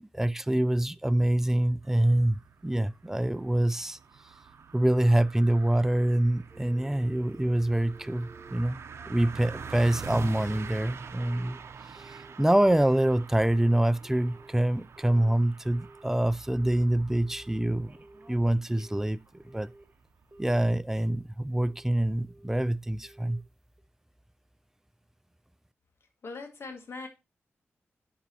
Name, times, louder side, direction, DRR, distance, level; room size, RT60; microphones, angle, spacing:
voice 1, 0.0-4.0 4.7-8.8 9.1-11.6 12.4-17.9 18.3-19.2 19.5-19.7 20.4-23.4, right 1 dB, 10° right, 0.4 m, -25 dB
sound 1, 1.8-20.4, right 6 dB, 75° right, 0.7 m, -45 dB
Telephone, 6.5-9.8 10.4-10.8 11.0-12.4 12.7-13.1 13.5-16.8 17.2-17.6 17.9-19.9 20.3-21.2 21.5-21.9 22.3-22.7 23.0-23.4 23.8-23.9, right 2 dB, 35° right, 1.6 m, -53 dB
voice 2, 26.2-27.1, left 3 dB, 65° left, 2.0 m, -40 dB
11.0 x 4.6 x 2.9 m
cardioid pair, 65°, 5 cm